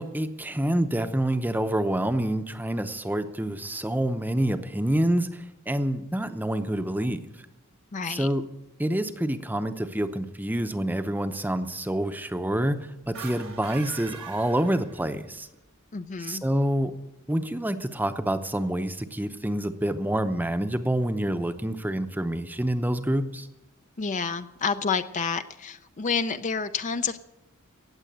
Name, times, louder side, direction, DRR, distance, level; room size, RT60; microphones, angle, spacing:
voice 1, 0.0-7.2 8.1-8.4 8.8-12.8 13.1-15.5 16.2-16.9 17.3-23.5, right 1 dB, 10° right, 9 dB, 0.8 m, -27 dB
voice 2, 7.9-8.3 15.9-16.4 24.0-27.2, left 5 dB, 35° left, 10 dB, 0.5 m, -29 dB
sound 1, 13.0-15.4, right 6 dB, 60° right, 1.4 m, -42 dB
18.0 x 7.6 x 9.0 m, 0.96 s
head